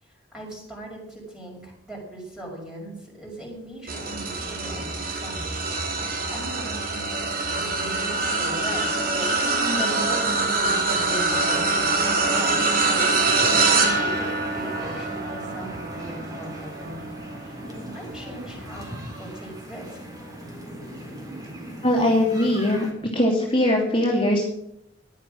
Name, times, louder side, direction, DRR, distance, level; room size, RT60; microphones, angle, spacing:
voice 1, 0.0-5.4 6.3-17.5 17.8-20.0, right 1 dB, 5° right, -3 dB, 5.7 m, -39 dB
sound 1, 3.9-19.4 19.9-20.2 21.4-21.5, right 3 dB, 50° right, 2.7 m, -25 dB
sound 2, 13.3-22.9, equal, 20° right, 4.1 m, -39 dB
voice 2, 21.8-22.8 23.1-24.5, left 1 dB, 30° left, -2 dB, 2.7 m, -21 dB
16.0 x 11.0 x 6.2 m, 0.79 s
head